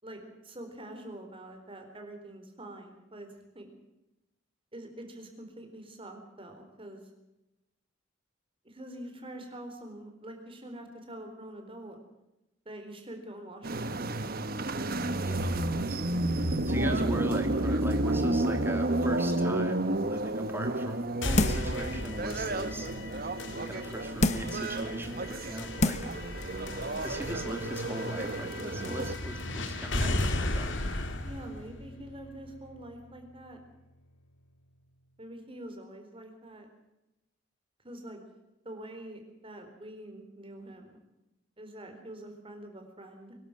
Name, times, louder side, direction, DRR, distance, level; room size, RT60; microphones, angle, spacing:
voice 1, 0.0-3.7 4.7-7.1 8.6-12.0 12.7-14.5 31.2-33.6 35.2-36.7 37.8-38.2 38.6-41.0 41.6-43.4, right 1 dB, 30° right, 5 dB, 4.1 m, -45 dB
sound 1, 13.6-29.2, right 1 dB, 50° right, 1.2 m, -31 dB
voice 2, 15.2-26.0 27.0-30.7, right 1 dB, 10° right, 5 dB, 2.7 m, -39 dB
sound 2, 21.2-33.2, left 1 dB, 70° left, 2.2 m, -36 dB
sound 3, 21.4-21.8 22.3-22.4 24.2-24.6 25.3-25.4 25.8-26.2 26.6-26.7, left 2 dB, 35° left, 1.1 m, -27 dB
24.0 x 12.0 x 9.1 m, 0.94 s
head